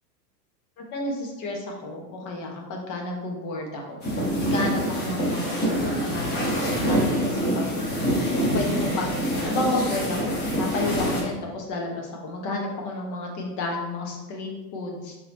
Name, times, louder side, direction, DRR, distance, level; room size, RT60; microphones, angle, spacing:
voice 1, 0.8-4.0 4.4-8.0 8.5-15.2, left 2 dB, 40° left, 0 dB, 1.1 m, -31 dB
sound 1, 4.0-11.2, equal, 20° left, 1.1 m, -25 dB
4.0 x 3.0 x 3.9 m, 1.1 s
hypercardioid pair, 130°, 48 cm